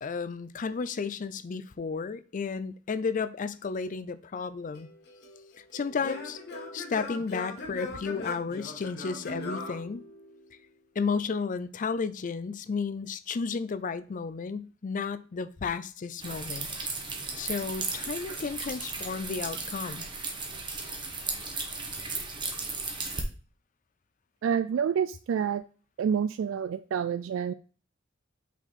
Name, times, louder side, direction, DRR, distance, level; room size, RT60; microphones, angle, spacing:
voice 1, 0.0-4.9 5.6-6.4 6.7-10.0 11.0-16.7 17.3-20.0, left 5 dB, 40° left, 0.4 m, -33 dB
Singing / Plucked string instrument, 4.8-10.6, left 2 dB, 60° left, 1.4 m, -40 dB
sound 1, 16.2-23.2, right 4 dB, 25° right, 1.2 m, -35 dB
voice 2, 24.4-25.6 26.0-27.5, right 7 dB, 80° right, 0.3 m, -28 dB
5.8 x 4.4 x 4.1 m
head